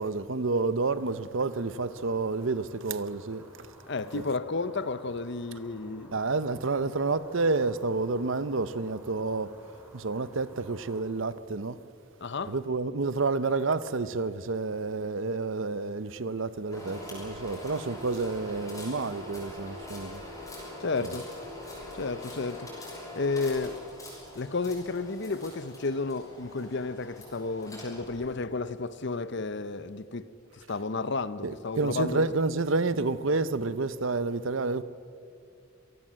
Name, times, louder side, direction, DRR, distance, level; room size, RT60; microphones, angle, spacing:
voice 1, 0.0-3.7 4.1-4.2 6.1-9.5 9.9-11.8 12.5-20.2 21.0-21.1 31.4-34.8, right 3 dB, 65° right, 0.8 m, -29 dB
sound 1, 0.9-11.0, equal, 10° right, 4.3 m, -54 dB
voice 2, 3.9-6.1 12.2-12.5 20.8-21.3 21.9-22.9 23.1-23.8 24.3-30.3 30.5-32.3, left 3 dB, 55° left, 0.8 m, -32 dB
sound 2, 16.7-28.3, left 1 dB, 15° left, 6.9 m, -43 dB
26.5 x 18.5 x 7.6 m
head